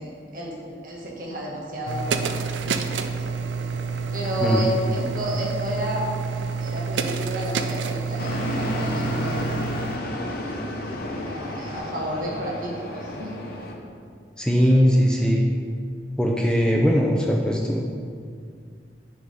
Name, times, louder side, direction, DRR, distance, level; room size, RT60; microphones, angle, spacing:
voice 1, 0.0-3.4 4.1-9.4 11.2-13.4, right 1 dB, 50° right, -3 dB, 1.5 m, -31 dB
sound 1, 1.9-10.0, right 5 dB, 85° right, 0.5 m, -28 dB
sound 2, 8.2-13.7, left 1 dB, 55° left, 0.9 m, -31 dB
voice 2, 14.4-15.4 16.2-18.0, equal, 5° left, -1 dB, 0.5 m, -20 dB
9.9 x 3.5 x 5.5 m, 2.2 s
head